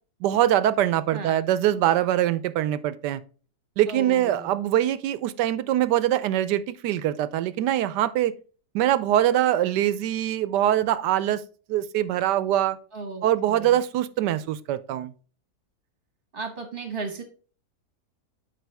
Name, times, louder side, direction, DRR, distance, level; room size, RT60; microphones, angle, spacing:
voice 1, 0.2-3.2 3.8-8.3 8.7-11.4 11.7-12.8 13.2-15.1, right 12 dB, 80° right, 1.2 m, -23 dB
voice 2, 3.9-4.6 12.9-13.8 16.3-17.2, right 3 dB, 35° right, 1.2 m, -35 dB
7.5 x 5.4 x 3.4 m
omnidirectional pair, 1.8 m